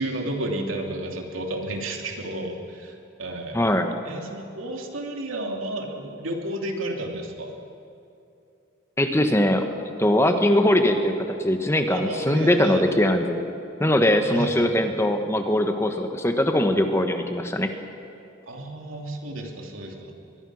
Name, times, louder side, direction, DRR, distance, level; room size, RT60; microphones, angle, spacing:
voice 1, 0.0-3.6 4.0-7.5 11.9-13.0 14.3-14.7 18.5-20.1, right 1 dB, 80° right, 1 dB, 3.1 m, -32 dB
voice 2, 3.5-3.9 9.0-13.5 13.8-17.7, left 1 dB, 15° left, 6 dB, 1.2 m, -21 dB
23.0 x 22.0 x 6.4 m, 2.7 s
head